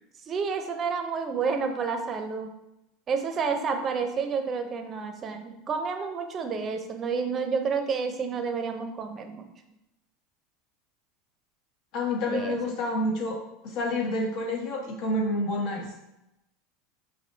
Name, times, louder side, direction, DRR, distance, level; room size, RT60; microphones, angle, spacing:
voice 1, 0.3-2.5 3.1-9.5 12.2-12.6, right 5 dB, 35° right, 6 dB, 0.6 m, -30 dB
voice 2, 11.9-15.8, left 1 dB, 60° left, 0 dB, 1.2 m, -29 dB
6.1 x 2.6 x 2.7 m, 0.89 s
hypercardioid pair, 100°, 0 cm